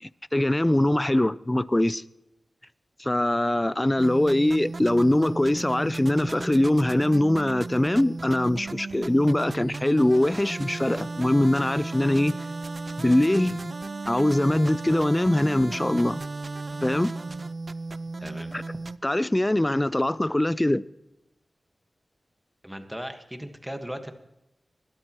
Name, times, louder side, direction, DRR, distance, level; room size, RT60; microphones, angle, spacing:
voice 1, 0.0-2.0 3.0-12.3 13.0-13.7 14.1-16.2 16.8-17.1 18.5-18.6 19.0-20.8, left 1 dB, 15° left, 0.5 m, -22 dB
sound 1, 4.0-19.0, right 3 dB, 45° right, 0.4 m, -35 dB
voice 2, 18.2-18.5 22.6-24.1, equal, 5° right, 1.6 m, -37 dB
21.0 x 12.5 x 3.1 m
wide cardioid pair, 65°, 0 cm